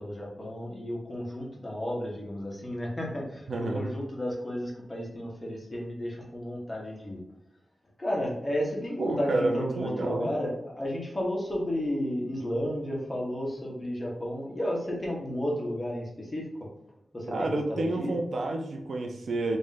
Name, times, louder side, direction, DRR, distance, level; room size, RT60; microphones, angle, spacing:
voice 1, 0.0-7.2 8.0-16.7 17.1-18.1, equal, 20° left, -3 dB, 1.2 m, -33 dB
voice 2, 3.5-3.9 9.0-10.3 17.3-19.6, right 2 dB, 85° right, 3 dB, 0.5 m, -29 dB
3.1 x 2.6 x 3.8 m, 0.82 s
wide cardioid pair, 90°, 0 cm